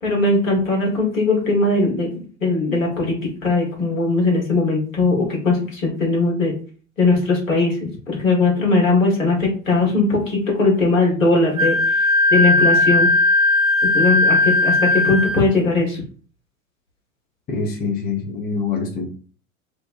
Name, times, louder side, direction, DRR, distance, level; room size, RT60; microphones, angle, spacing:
voice 1, 0.0-3.1 3.4-6.5 7.0-7.7 8.1-11.7 12.3-13.1 13.9-16.0, left 3 dB, 75° left, -2 dB, 1.4 m, -19 dB
Wind instrument woodwind instrument, 11.6-15.4, left 2 dB, 75° right, 0.8 m, -17 dB
voice 2, 17.5-19.1, left 4 dB, 25° left, 0 dB, 0.7 m, -25 dB
2.9 x 2.1 x 2.4 m, 0.39 s
figure-of-eight pair, 75°, 40 cm